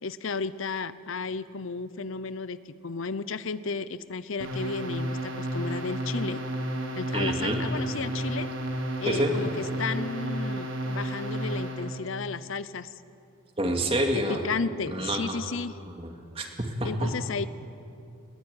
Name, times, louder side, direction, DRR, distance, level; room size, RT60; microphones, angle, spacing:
voice 1, 0.0-6.4 6.9-8.5 9.0-12.9 14.1-15.8 16.8-17.5, left 4 dB, 75° left, 15 dB, 0.7 m, -33 dB
sound 1, 4.4-12.0, right 1 dB, 85° right, 3.5 m, -32 dB
voice 2, 7.1-7.6 9.0-9.3 13.6-14.4 14.9-15.4 16.0-16.1 16.4-17.1, right 1 dB, 30° right, 3 dB, 2.3 m, -27 dB
21.0 x 17.5 x 9.7 m, 2.5 s
head